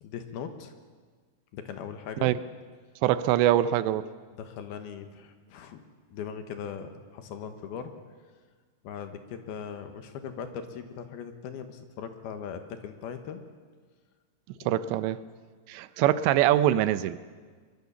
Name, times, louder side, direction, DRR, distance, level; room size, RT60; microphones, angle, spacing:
voice 1, 0.0-0.7 1.5-2.3 4.4-5.8 6.1-7.9 8.8-13.4 14.6-15.0, left 7 dB, 70° left, 7 dB, 3.0 m, -39 dB
voice 2, 3.0-4.1 14.7-15.2 15.7-17.2, right 13 dB, 85° right, 14 dB, 3.0 m, -23 dB
23.0 x 22.5 x 7.1 m, 1.5 s
omnidirectional pair, 5.0 m